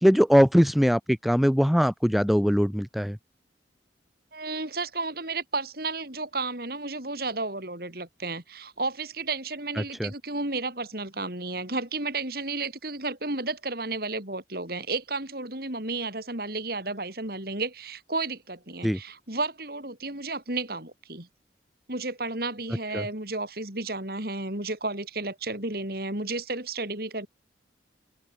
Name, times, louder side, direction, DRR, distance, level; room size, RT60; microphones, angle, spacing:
voice 1, 0.0-3.2 9.8-10.1 18.8-19.0 22.9-23.1, equal, ahead, 2.4 m, -21 dB
voice 2, 4.3-21.3 21.9-27.3, right 3 dB, 55° right, 5.3 m, -32 dB
open air
head